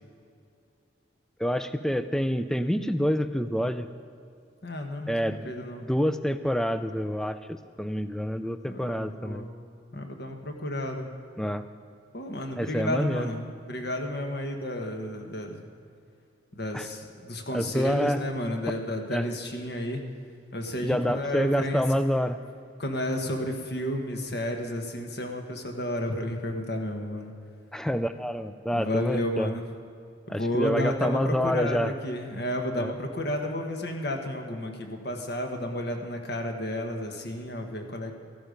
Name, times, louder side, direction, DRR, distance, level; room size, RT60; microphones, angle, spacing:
voice 1, 1.4-3.9 5.1-5.5 5.8-9.4 11.4-11.6 12.6-13.3 16.7-16.9 17.5-18.2 19.1-19.2 20.8-22.4 27.7-29.5 30.3-31.9 32.8-32.9, equal, 5° left, 11 dB, 0.4 m, -27 dB
voice 2, 4.6-5.9 8.7-9.5 9.9-11.1 12.1-15.7 16.5-20.0 20.5-22.0 22.8-27.3 28.7-29.7 30.3-38.1, left 1 dB, 55° left, 3 dB, 1.4 m, -32 dB
14.5 x 12.0 x 5.2 m, 2.5 s
head